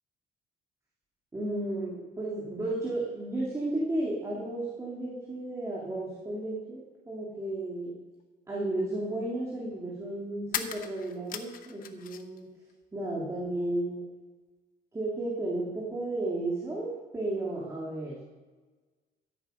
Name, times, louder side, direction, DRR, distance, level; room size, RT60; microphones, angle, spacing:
voice 1, 1.3-8.0 8.5-12.5 12.9-14.0 14.9-18.2, right 2 dB, 20° right, -5 dB, 2.8 m, -33 dB
sound 1, 8.2-8.3 10.4-12.4 12.7-13.6, left 9 dB, 55° left, 1.0 m, -38 dB
13.5 x 8.7 x 5.3 m, 1.3 s
cardioid pair, 110°, 17 cm